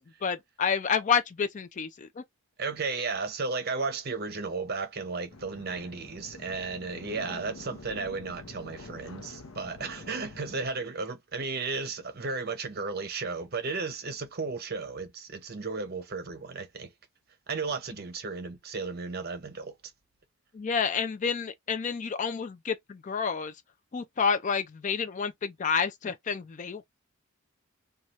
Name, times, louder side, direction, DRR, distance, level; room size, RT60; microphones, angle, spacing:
voice 1, 0.2-2.2 20.5-23.5 23.9-26.8, left 6 dB, 35° left, 0.4 m, -29 dB
voice 2, 2.6-16.9 17.5-19.7, right 4 dB, 45° right, 0.6 m, -34 dB
sound 1, 5.3-10.7, left 2 dB, 70° left, 0.7 m, -46 dB
3.1 x 2.3 x 2.7 m
head